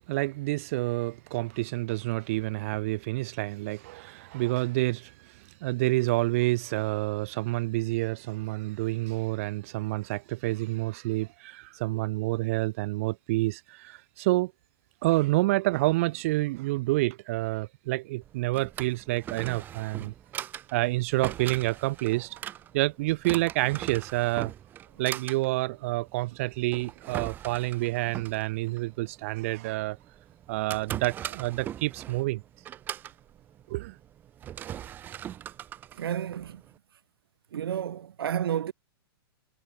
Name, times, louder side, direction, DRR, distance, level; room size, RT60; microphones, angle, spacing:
voice 1, 0.0-14.5 15.0-20.1 20.7-22.4 22.7-24.5 25.0-30.0 30.5-32.4 33.7-34.0, right 20 dB, 35° right, 2.8 m, -28 dB
Drawer open or close, 18.2-36.8, right 11 dB, 15° right, 4.2 m, -41 dB
voice 2, 35.9-36.6 37.5-38.7, right 10 dB, 70° right, 2.2 m, -31 dB
hypercardioid pair, 175°, 13 cm